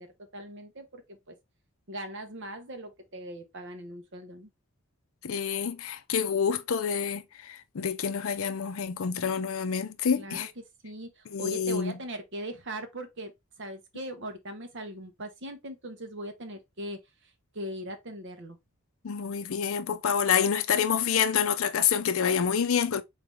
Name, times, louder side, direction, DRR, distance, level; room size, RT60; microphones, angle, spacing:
voice 1, 0.0-1.3 1.9-4.5 10.2-10.5 10.8-13.3 13.6-18.6, right 1 dB, 55° right, 1.0 m, -40 dB
voice 2, 5.2-10.5 11.3-12.0 19.0-23.0, left 7 dB, 65° left, 0.5 m, -27 dB
3.9 x 3.2 x 3.5 m
head